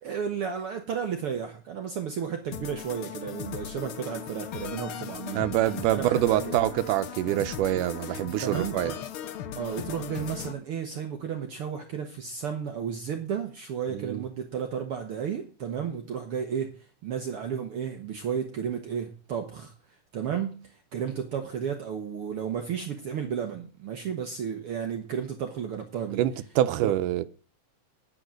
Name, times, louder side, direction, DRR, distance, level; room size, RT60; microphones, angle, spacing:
voice 1, 0.0-5.5 5.9-6.4 8.4-8.9 9.5-16.7 17.0-19.7 20.1-26.2 26.8-26.9, right 7 dB, 60° right, 1.6 m, -33 dB
sound 1, 2.5-10.5, left 9 dB, 80° left, 1.2 m, -38 dB
voice 2, 5.3-8.9 13.9-14.2 26.2-27.2, right 13 dB, 85° right, 2.3 m, -25 dB
9.9 x 8.8 x 6.3 m
omnidirectional pair, 3.6 m